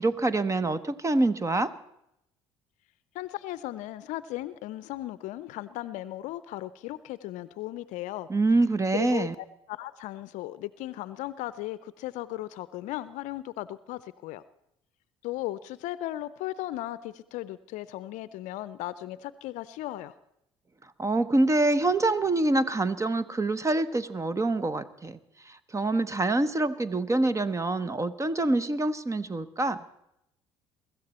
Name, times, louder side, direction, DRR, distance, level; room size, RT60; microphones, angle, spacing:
voice 1, 0.0-1.7 8.3-9.3 21.0-25.2 25.5-29.8, right 2 dB, 20° right, 15 dB, 1.0 m, -26 dB
voice 2, 3.1-8.3 8.9-14.4 15.2-20.1, left 15 dB, 65° left, 16 dB, 0.6 m, -36 dB
23.5 x 13.5 x 4.3 m, 0.80 s
hypercardioid pair, 60°, 14 cm